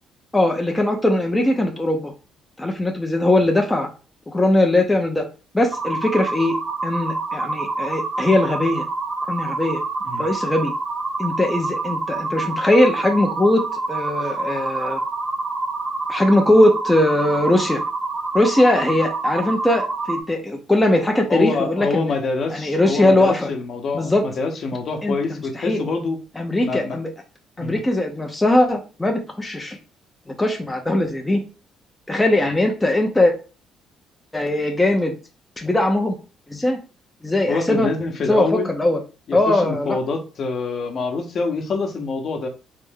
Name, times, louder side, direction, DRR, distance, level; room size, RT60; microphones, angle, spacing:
voice 1, 0.3-2.1 2.6-3.9 4.3-5.3 5.5-6.5 6.8-8.8 9.3-9.8 10.2-10.7 11.2-15.0 16.1-17.8 18.3-22.1 22.5-23.5 23.9-24.2 25.0-25.8 26.4-27.1 27.6-29.8 30.3-31.4 32.1-33.3 34.3-35.2 35.6-36.2 36.5-36.8 37.2-37.9 38.3-39.0 39.3-40.0, left 1 dB, 10° left, 2 dB, 0.5 m, -20 dB
sound 1, 5.7-20.2, right 3 dB, 25° right, 0.9 m, -27 dB
voice 2, 21.3-26.2 26.6-27.0 27.6-27.8 37.5-38.7 39.3-42.5, left 4 dB, 50° left, 3 dB, 0.8 m, -25 dB
3.3 x 2.5 x 3.5 m, 0.33 s
cardioid pair, 115°, 0 cm